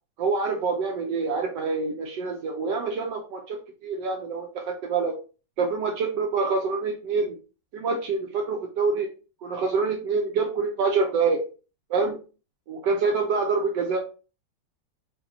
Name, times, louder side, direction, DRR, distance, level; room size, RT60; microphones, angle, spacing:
voice 1, 0.2-3.6 3.8-5.2 5.6-7.4 7.7-9.1 9.4-11.4 11.9-12.2 12.7-14.0, right 4 dB, 80° right, 3 dB, 1.2 m, -26 dB
6.0 x 2.2 x 2.6 m, 0.34 s
omnidirectional pair, 2.0 m